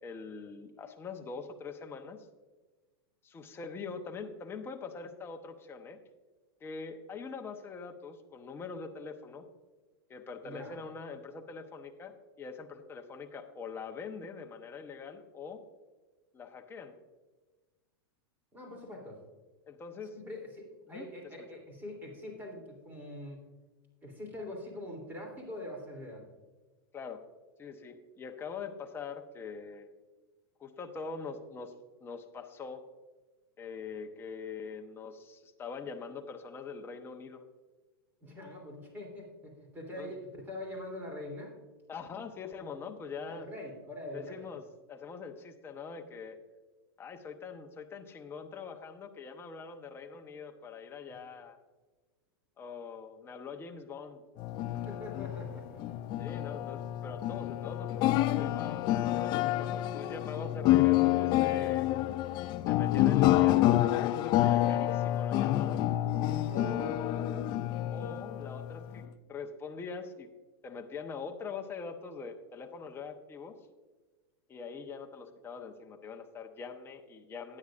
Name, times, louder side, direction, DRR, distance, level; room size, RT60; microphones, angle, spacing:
voice 1, 0.0-2.3 3.2-6.0 6.6-9.4 10.1-15.6 16.3-16.9 19.7-20.1 20.9-21.1 26.9-27.2 27.6-29.9 30.6-31.7 32.0-32.8 33.6-37.4 40.0-40.1 41.9-43.5 44.1-44.6 44.9-46.4 47.0-51.6 52.6-54.2 56.2-61.9 62.7-65.8 67.9-70.3 70.6-73.5 74.5-77.6, left 5 dB, 20° left, 4 dB, 0.9 m, -43 dB
voice 2, 10.4-10.8 18.5-19.2 20.1-23.4 24.0-26.2 38.2-41.5 43.3-44.5 54.8-56.0 66.5-68.2, left 1 dB, 15° right, 0 dB, 3.2 m, -43 dB
sound 1, 54.4-69.1, left 14 dB, 35° left, 0.4 m, -28 dB
12.5 x 9.8 x 2.5 m, 1.3 s
hypercardioid pair, 130°, 13 cm